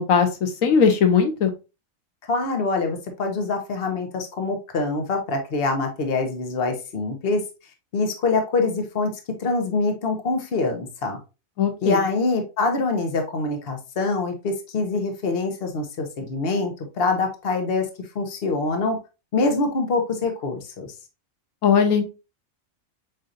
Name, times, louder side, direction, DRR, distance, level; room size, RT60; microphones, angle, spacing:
voice 1, 0.0-1.5 11.6-12.0 21.6-22.0, left 6 dB, 90° left, 6 dB, 1.2 m, -19 dB
voice 2, 2.3-7.4 7.9-9.1 9.4-11.2 11.8-17.9 18.1-19.0 19.3-20.9, left 3 dB, 50° left, 4 dB, 1.1 m, -25 dB
7.6 x 2.6 x 2.6 m, 0.29 s
omnidirectional pair, 1.4 m